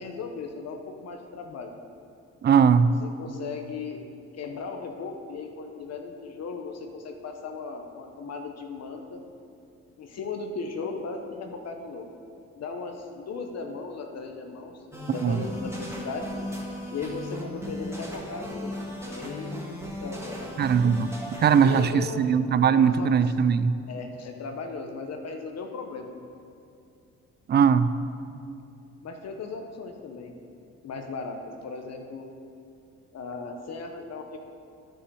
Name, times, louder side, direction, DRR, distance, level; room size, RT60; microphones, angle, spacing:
voice 1, 0.0-1.7 2.8-4.0 4.3-9.2 10.0-12.1 12.5-14.8 15.1-16.3 16.9-18.8 19.0-20.5 21.6-22.2 22.7-23.1 23.9-26.3 29.0-30.3 30.8-32.3 33.1-34.4, left 4 dB, 55° left, 4 dB, 1.0 m, -37 dB
voice 2, 2.4-2.9 15.2-15.4 20.6-21.1 21.4-23.8 27.5-27.9, right 7 dB, 35° right, 14 dB, 0.4 m, -20 dB
sound 1, 14.9-21.8, equal, 10° right, 1.7 m, -36 dB
11.5 x 6.4 x 4.7 m, 2.5 s
cardioid pair, 90°, 30 cm